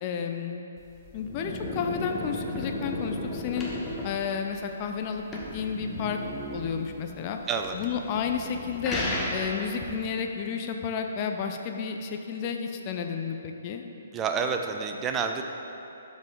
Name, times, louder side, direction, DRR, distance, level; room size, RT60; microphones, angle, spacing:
voice 1, 0.0-0.6 1.1-3.7 4.0-5.3 5.5-6.2 6.5-7.4 7.7-9.0 9.3-13.8, left 6 dB, 30° left, 4 dB, 0.5 m, -31 dB
sound 1, 0.8-10.0, left 1 dB, 10° left, 1.0 m, -35 dB
voice 2, 14.1-15.4, right 5 dB, 15° right, 4 dB, 0.5 m, -28 dB
12.5 x 5.2 x 3.7 m, 2.8 s
figure-of-eight pair, 130°, 0 cm